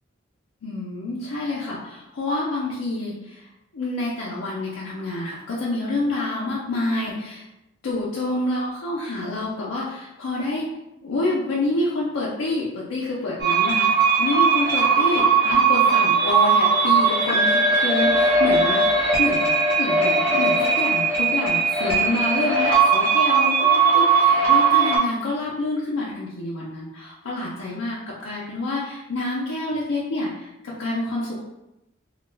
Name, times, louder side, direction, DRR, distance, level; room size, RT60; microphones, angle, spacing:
voice 1, 0.6-3.4 3.7-7.4 7.8-10.6 11.0-13.9 14.2-23.5 23.9-30.5 30.8-31.4, left 2 dB, 90° left, -6 dB, 0.5 m, -27 dB
sound 1, 13.4-25.0, right 4 dB, 45° right, 0.8 m, -19 dB
2.3 x 2.1 x 3.2 m, 0.92 s
head